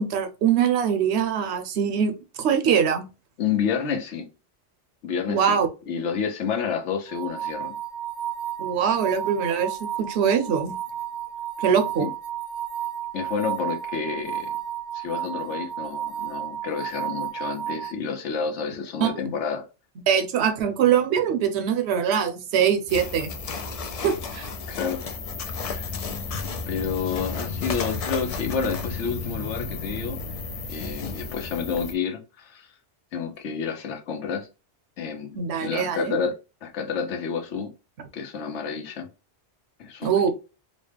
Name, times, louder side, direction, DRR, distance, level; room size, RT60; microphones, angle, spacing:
voice 1, 0.0-2.1 2.4-3.1 5.3-5.7 8.6-10.7 11.6-12.1 19.0-19.3 20.1-23.3 24.0-24.5 35.4-36.2 40.0-40.3, right 8 dB, 70° right, 0.9 m, -23 dB
voice 2, 3.4-4.2 5.0-5.6 5.9-7.7 12.0-12.1 13.1-14.5 14.9-19.6 24.7-25.0 25.6-25.9 26.7-30.4 30.7-32.7 33.1-34.5 35.0-37.7 38.1-39.1 39.8-40.3, left 6 dB, 80° left, 1.1 m, -29 dB
sound 1, 7.1-17.9, right 10 dB, 50° right, 0.5 m, -32 dB
sound 2, 22.9-31.9, left 4 dB, 55° left, 0.4 m, -32 dB
4.0 x 2.1 x 3.3 m
omnidirectional pair, 1.2 m